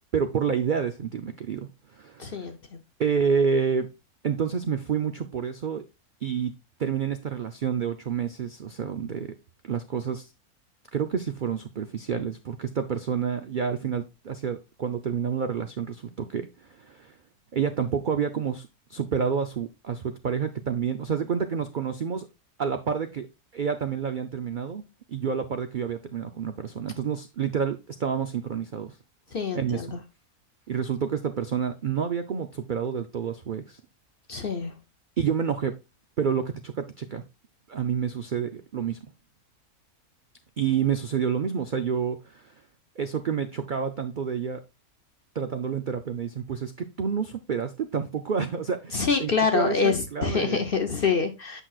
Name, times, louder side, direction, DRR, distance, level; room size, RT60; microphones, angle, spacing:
voice 1, 0.1-2.4 3.0-3.9 4.2-5.8 6.2-6.5 6.8-9.3 9.6-10.3 10.9-17.1 17.5-22.3 22.6-23.3 23.5-24.8 25.1-29.0 29.5-29.8 30.7-33.8 35.2-35.7 36.2-37.2 37.7-39.0 40.6-42.5 43.0-44.6 45.3-50.6, right 7 dB, 80° right, 8 dB, 0.4 m, -29 dB
voice 2, 2.2-2.8 29.3-30.0 34.3-34.7 48.9-51.6, left 5 dB, 50° left, 6 dB, 0.7 m, -26 dB
8.2 x 6.0 x 2.4 m, 0.26 s
omnidirectional pair, 1.6 m